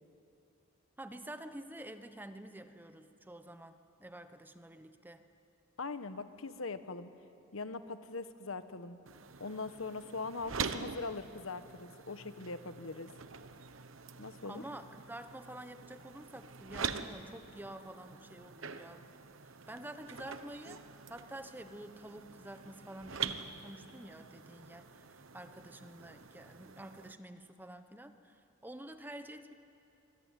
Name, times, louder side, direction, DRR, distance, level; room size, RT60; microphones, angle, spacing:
voice 1, 1.0-5.2 14.4-19.1 19.4-20.8 21.1-29.5, right 1 dB, 10° right, 8 dB, 1.1 m, -49 dB
voice 2, 5.8-7.1 7.5-9.0 9.4-13.1 14.2-14.6, left 3 dB, 85° left, 11 dB, 1.2 m, -41 dB
sound 1, 9.1-27.1, right 6 dB, 75° right, 1.1 m, -45 dB
24.5 x 23.0 x 9.2 m, 2.6 s
head